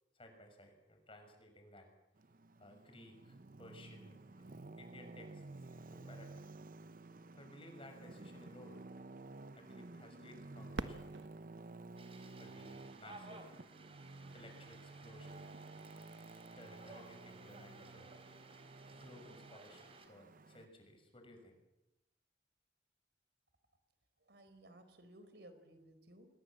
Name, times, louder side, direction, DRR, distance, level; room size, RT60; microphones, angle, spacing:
voice 1, 0.1-1.9 2.6-5.4 5.7-6.3 7.4-8.8 9.5-11.1 12.4-13.5 14.3-15.4 16.6-18.1 18.9-21.5, left 1 dB, 30° left, 5 dB, 6.1 m, -57 dB
Traffic noise roadway noise, 2.2-20.7, right 2 dB, 50° right, 0.8 m, -53 dB
Fireworks, 10.7-13.5 14.2-14.3 15.0-15.4 17.3-17.4, right 2 dB, 85° right, 1.4 m, -47 dB
sound 1, 12.0-20.1, right 3 dB, 35° right, 3.7 m, -58 dB
voice 2, 24.3-26.3, right 1 dB, 70° right, 9 dB, 4.2 m, -58 dB
27.5 x 21.0 x 7.7 m, 0.93 s
head